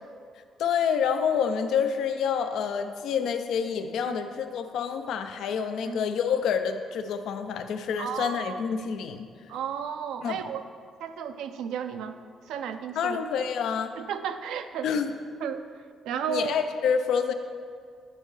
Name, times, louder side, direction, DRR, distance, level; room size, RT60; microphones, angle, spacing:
voice 1, 0.6-9.3 10.2-10.4 13.0-13.9 14.8-15.1 16.3-17.3, left 7 dB, 80° left, 8 dB, 0.4 m, -27 dB
voice 2, 8.0-8.6 9.5-10.6 11.0-12.2 12.5-13.2 14.0-14.9 15.4-15.7 16.0-16.6, right 7 dB, 85° right, 8 dB, 0.4 m, -33 dB
9.6 x 5.4 x 3.1 m, 2.1 s
cardioid pair, 90°, 0 cm